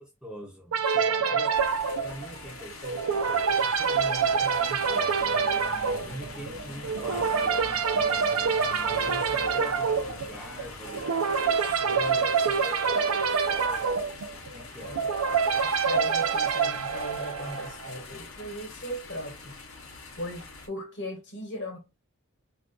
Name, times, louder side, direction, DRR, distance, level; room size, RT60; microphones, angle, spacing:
voice 1, 0.2-1.5 1.8-5.2 5.6-7.5 8.9-11.1 11.5-14.0 14.5-15.1, equal, 5° right, 0.5 m, -43 dB
sound 1, 0.7-17.9, right 5 dB, 90° right, 0.4 m, -26 dB
sound 2, 1.5-20.7, left 3 dB, 75° left, 0.6 m, -44 dB
sound 3, 4.9-11.7, right 1 dB, 70° right, 1.0 m, -47 dB
voice 2, 15.5-19.6 20.2-21.8, equal, 55° left, 0.9 m, -37 dB
2.4 x 2.3 x 3.6 m
head